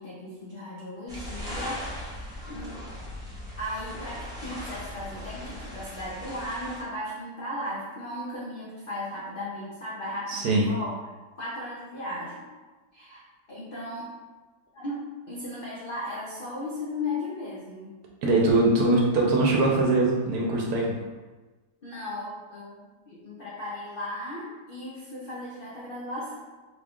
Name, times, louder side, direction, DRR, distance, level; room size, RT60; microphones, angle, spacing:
voice 1, 0.0-2.8 3.6-10.9 11.4-12.5 12.9-13.2 13.5-14.1 14.7-17.9 21.8-26.4, left 1 dB, 75° left, -7 dB, 0.5 m, -36 dB
sound 1, 1.1-6.8, left 1 dB, 5° right, 0.3 m, -38 dB
voice 2, 10.3-10.7 18.2-20.9, right 2 dB, 65° right, -2 dB, 1.1 m, -22 dB
3.6 x 2.3 x 3.6 m, 1.3 s
omnidirectional pair, 1.9 m